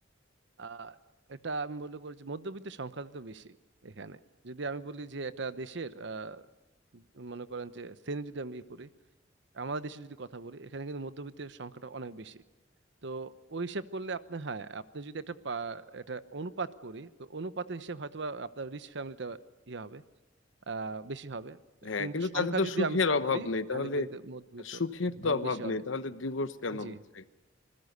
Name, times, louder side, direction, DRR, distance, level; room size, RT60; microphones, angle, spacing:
voice 1, 0.6-1.0 1.3-3.6 3.8-6.4 6.9-8.9 9.5-12.4 13.0-19.4 19.7-20.0 20.7-24.8 25.2-25.8 26.7-27.0, right 3 dB, 70° right, 13 dB, 1.0 m, -39 dB
voice 2, 21.8-24.1 24.6-27.2, left 3 dB, 90° left, 12 dB, 1.0 m, -31 dB
26.5 x 20.5 x 6.8 m, 1.1 s
head